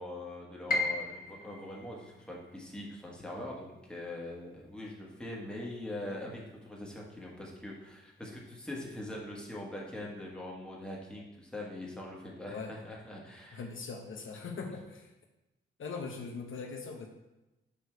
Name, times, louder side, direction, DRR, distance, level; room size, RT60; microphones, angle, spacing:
voice 1, 0.0-13.6, left 1 dB, 5° left, -3 dB, 1.5 m, -42 dB
Piano, 0.7-6.6 7.0-8.1 8.5-8.6 9.3-9.7, left 2 dB, 45° left, 0.8 m, -39 dB
voice 2, 13.5-15.1 15.8-17.1, left 4 dB, 70° left, 2 dB, 0.9 m, -40 dB
6.8 x 4.8 x 4.6 m, 0.97 s
wide cardioid pair, 125°, 21 cm